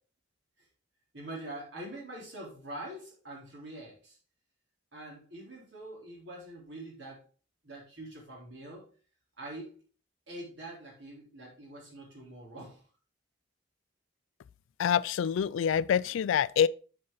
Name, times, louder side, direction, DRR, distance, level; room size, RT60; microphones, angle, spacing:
voice 1, 1.1-4.2 4.9-7.2 7.6-8.8 9.4-9.7 10.3-12.8, right 1 dB, 65° right, 3.6 m, -44 dB
voice 2, 14.8-16.7, left 8 dB, 80° left, 0.3 m, -26 dB
7.7 x 5.5 x 3.8 m
head